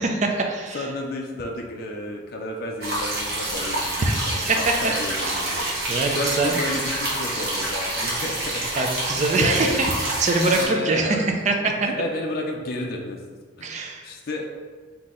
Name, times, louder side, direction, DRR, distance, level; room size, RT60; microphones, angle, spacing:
voice 1, 0.0-0.9 4.0-4.6 5.2-6.6 8.0-8.1 8.8-11.2 11.5-11.9 13.6-14.0, right 3 dB, 40° right, 3 dB, 0.4 m, -24 dB
voice 2, 0.5-8.8 9.3-9.8 10.4-11.2 11.8-13.2 13.6-14.5, left 2 dB, 50° left, 1 dB, 0.4 m, -31 dB
sound 1, 2.8-10.7, right 1 dB, 55° right, 1.1 m, -27 dB
4.0 x 2.8 x 3.7 m, 1.5 s
head